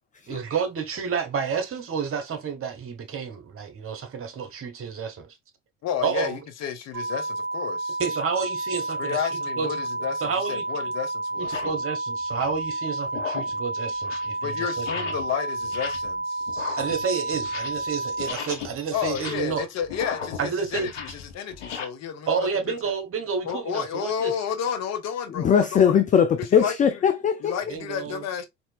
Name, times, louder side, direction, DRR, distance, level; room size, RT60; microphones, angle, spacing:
voice 1, 0.3-5.3 6.0-6.4 8.0-9.2 9.6-9.7 10.2-10.6 11.4-15.2 16.5-19.7 20.4-20.9 22.3-24.3 27.7-28.2, right 6 dB, 35° right, 1.2 m, -30 dB
voice 2, 5.8-8.0 9.0-11.8 14.4-16.5 18.9-22.5 23.4-26.0 26.4-26.7 27.4-28.5, left 8 dB, 45° left, 0.9 m, -31 dB
sound 1, 6.9-18.3, right 2 dB, 5° right, 2.0 m, -30 dB
sound 2, 9.8-10.0 10.7-10.8 11.3-11.8 12.2-12.7 13.1-13.6 13.9-14.4 14.8-15.3 15.6-16.2 16.5-17.9 18.2-21.9, left 7 dB, 80° left, 0.8 m, -37 dB
voice 3, 25.4-27.5, left 8 dB, 20° left, 0.4 m, -20 dB
4.3 x 2.7 x 2.4 m
figure-of-eight pair, 60°, 37 cm